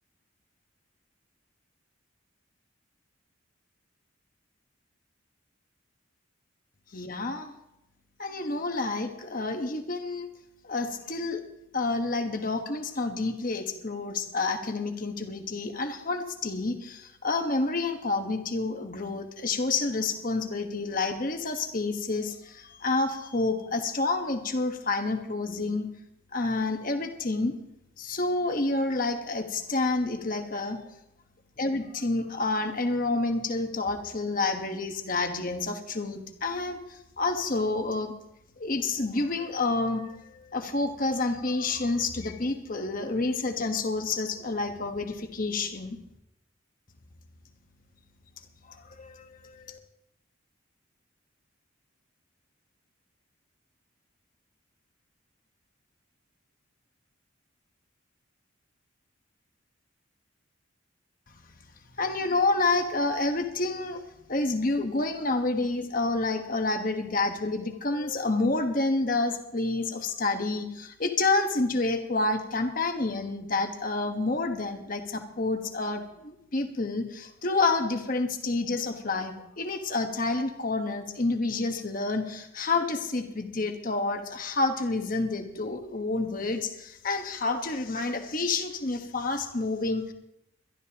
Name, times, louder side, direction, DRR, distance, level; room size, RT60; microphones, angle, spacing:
voice 1, 6.9-7.5 8.2-10.3 10.6-11.4 11.7-25.9 26.3-27.6 28.0-30.8 31.6-38.1 38.6-46.0 48.7-49.8 62.0-64.0 64.3-90.1, left 3 dB, 40° left, 6 dB, 1.2 m, -29 dB
22.5 x 12.0 x 2.9 m, 0.83 s
head